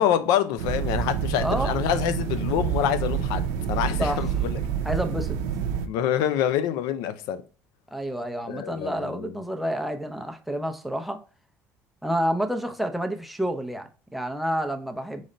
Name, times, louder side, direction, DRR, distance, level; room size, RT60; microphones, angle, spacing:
voice 1, 0.0-4.6 5.9-7.4 8.5-9.4, left 10 dB, 85° left, 0.5 m, -26 dB
sound 1, 0.6-5.9, right 8 dB, 90° right, 0.5 m, -27 dB
voice 2, 1.4-1.8 4.0-4.2 4.8-5.4 7.9-11.2 12.0-15.3, equal, ahead, 0.6 m, -29 dB
4.0 x 3.2 x 3.8 m
cardioid pair, 115°, 6 cm